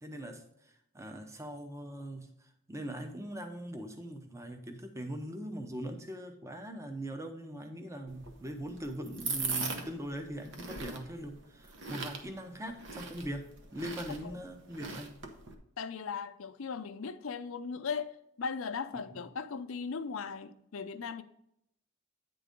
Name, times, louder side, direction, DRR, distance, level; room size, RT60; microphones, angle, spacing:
voice 1, 0.0-13.4 13.7-15.2 18.9-19.0, right 1 dB, 15° right, 0.7 m, -41 dB
sound 1, 8.1-15.5, right 4 dB, 65° right, 1.0 m, -40 dB
voice 2, 15.8-21.2, left 5 dB, 80° left, 0.6 m, -38 dB
9.2 x 3.8 x 5.1 m
head